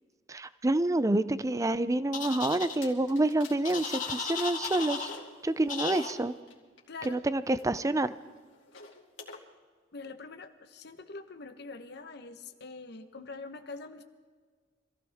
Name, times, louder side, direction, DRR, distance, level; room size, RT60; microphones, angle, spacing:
voice 1, 0.3-5.1 5.4-6.3 7.1-8.1, right 2 dB, 15° right, 14 dB, 0.5 m, -28 dB
sound 1, 2.1-2.7 3.6-5.2 5.7-6.1, left 5 dB, 45° left, 2.0 m, -35 dB
sound 2, 2.4-4.1 4.4-7.1 7.6-9.4, left 5 dB, 85° left, 2.5 m, -49 dB
voice 2, 6.9-7.2 9.9-14.0, left 3 dB, 60° left, 8 dB, 1.1 m, -44 dB
25.5 x 15.5 x 3.6 m, 1.5 s
head